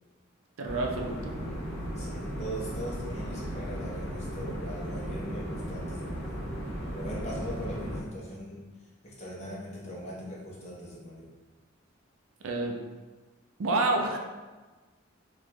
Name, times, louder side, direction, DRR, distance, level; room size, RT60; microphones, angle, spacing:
sound 1, 0.6-8.0, equal, 60° left, 1.0 m, -36 dB
voice 1, 0.6-1.3 12.4-12.8 13.6-14.2, right 2 dB, 90° right, 2 dB, 0.5 m, -28 dB
voice 2, 1.9-6.4 6.9-8.7 9.0-11.3, equal, 35° left, -6 dB, 0.9 m, -40 dB
3.9 x 2.4 x 3.0 m, 1.3 s
head